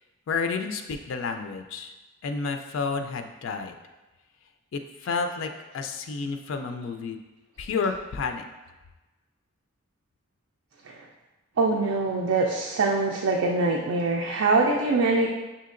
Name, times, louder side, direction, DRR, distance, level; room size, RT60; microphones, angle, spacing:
voice 1, 0.3-1.9 2.2-3.7 4.7-7.2 7.6-8.4, left 4 dB, 70° left, 6 dB, 0.4 m, -30 dB
voice 2, 11.6-15.3, right 3 dB, 85° right, 0 dB, 0.4 m, -23 dB
6.2 x 2.8 x 2.5 m, 1.1 s
head